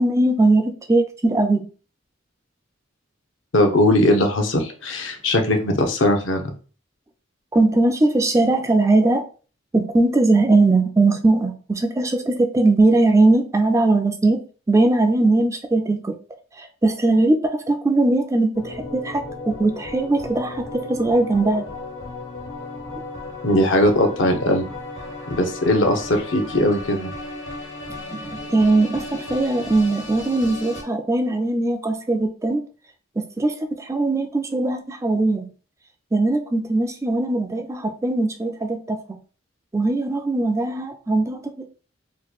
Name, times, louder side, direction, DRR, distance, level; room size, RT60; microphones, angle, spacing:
voice 1, 0.0-1.7 7.5-9.3 9.7-14.4 14.7-16.1 16.6-21.7 28.1-32.6 33.2-35.5 36.1-39.2 39.7-41.7, right 2 dB, 15° right, 0.4 m, -20 dB
voice 2, 3.5-6.5 23.4-24.7 25.3-27.1, left 1 dB, 70° left, 0.7 m, -19 dB
sound 1, 18.5-30.8, left 2 dB, 90° left, 1.5 m, -35 dB
3.0 x 2.2 x 4.1 m
head